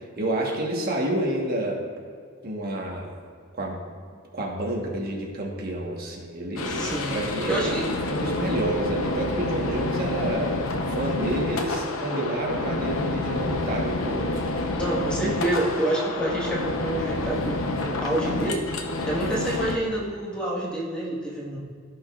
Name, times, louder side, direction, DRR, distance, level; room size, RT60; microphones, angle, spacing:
voice 1, 0.0-1.8 2.4-3.1 3.5-3.8 4.3-7.8 8.0-10.6 10.9-14.3, right 1 dB, 45° right, -1 dB, 1.2 m, -29 dB
sound 1, 6.6-19.8, left 2 dB, 85° left, 0.7 m, -28 dB
voice 2, 6.7-7.2 7.4-7.9 14.7-18.6 19.0-21.6, right 1 dB, 5° left, -5 dB, 1.4 m, -28 dB
15.5 x 5.2 x 2.4 m, 2.1 s
head